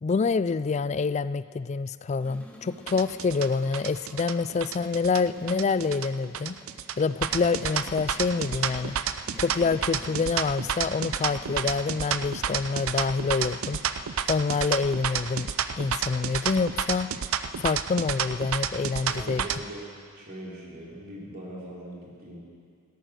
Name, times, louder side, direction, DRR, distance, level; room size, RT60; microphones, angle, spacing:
voice 1, 0.0-6.6 7.0-9.0 9.4-13.8 14.3-15.5 15.8-17.1 17.6-19.4, left 4 dB, 30° left, 16 dB, 0.3 m, -27 dB
sound 1, 2.2-14.5, equal, 5° left, 1.7 m, -51 dB
sound 2, 2.9-19.6, right 8 dB, 75° right, 0.6 m, -30 dB
voice 2, 19.1-19.8 20.1-22.4, right 1 dB, 45° right, -4 dB, 3.5 m, -41 dB
16.0 x 13.0 x 6.4 m, 2.2 s
head